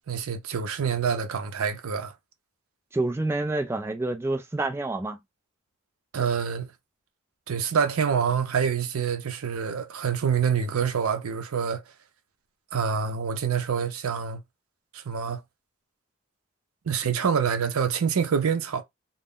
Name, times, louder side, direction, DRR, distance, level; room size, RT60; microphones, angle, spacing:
voice 1, 0.1-2.1 6.1-6.7 7.5-11.8 12.7-14.4 14.9-15.4 16.9-18.8, right 6 dB, 75° right, 0.5 m, -26 dB
voice 2, 2.9-5.2, right 2 dB, 10° right, 0.4 m, -28 dB
2.5 x 2.0 x 3.5 m
head